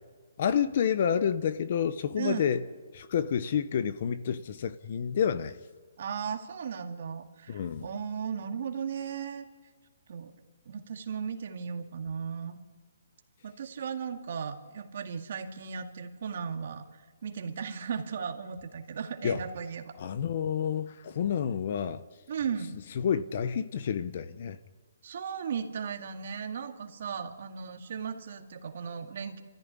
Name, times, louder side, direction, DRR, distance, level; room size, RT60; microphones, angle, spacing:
voice 1, 0.4-2.6 2.9-5.6 7.5-7.9 19.2-19.4 20.0-22.0 23.0-24.6, left 8 dB, 40° left, 0.8 m, -29 dB
voice 2, 2.2-2.5 6.0-9.4 10.1-10.3 10.7-12.6 13.4-19.9 22.3-22.7 25.0-29.4, right 6 dB, 45° right, 2.1 m, -36 dB
27.5 x 14.5 x 9.8 m
hypercardioid pair, 175°, 0 cm